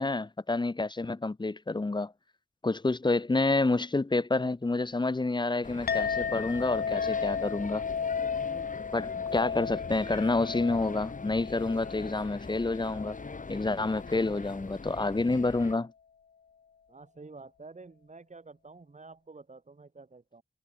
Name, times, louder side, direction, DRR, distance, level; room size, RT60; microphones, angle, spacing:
voice 1, 0.0-2.1 2.6-7.8 8.9-13.2 13.5-15.9, left 3 dB, 25° left, 1.0 m, -28 dB
sound 1, 5.6-15.7, left 4 dB, 50° left, 5.5 m, -43 dB
Chink clink, 5.9-14.6, left 6 dB, 65° left, 0.9 m, -35 dB
voice 2, 16.9-20.4, right 3 dB, 45° right, 7.8 m, -49 dB
wide cardioid pair, 105°, 18 cm